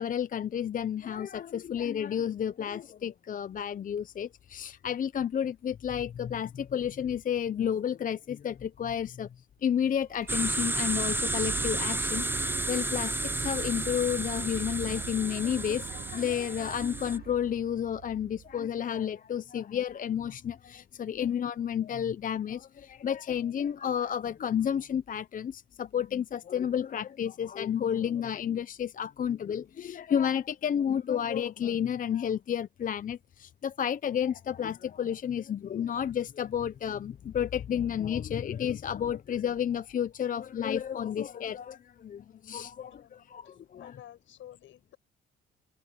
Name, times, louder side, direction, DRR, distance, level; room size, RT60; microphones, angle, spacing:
voice 1, 0.0-9.3 9.6-44.0, left 9 dB, 45° left, 0.6 m, -31 dB
sound 1, 9.7-19.0, right 10 dB, 50° right, 0.7 m, -44 dB
sound 2, 10.3-17.2, right 2 dB, 10° right, 0.8 m, -32 dB
voice 2, 42.8-43.3 43.7-45.0, left 11 dB, 75° left, 7.6 m, -51 dB
cardioid pair, 90°, 20 cm